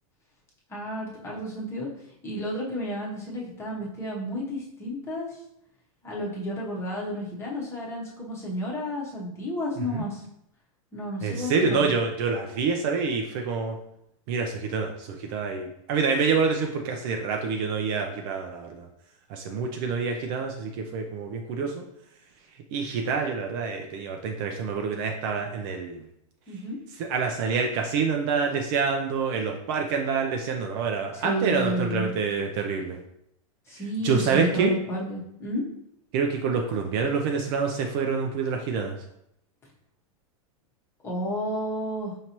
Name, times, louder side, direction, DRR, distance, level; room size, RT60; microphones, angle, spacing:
voice 1, 0.7-1.9 2.2-5.4 6.0-10.2 10.9-11.9 26.5-26.8 31.1-32.1 33.7-35.6 41.0-42.1, equal, 15° left, -4 dB, 0.9 m, -31 dB
voice 2, 11.2-13.8 14.3-18.9 19.3-21.8 22.7-26.0 27.0-33.0 34.0-34.7 36.1-39.0, right 5 dB, 40° right, 3 dB, 0.4 m, -27 dB
4.6 x 2.7 x 2.9 m, 0.76 s
supercardioid pair, 150°, 18 cm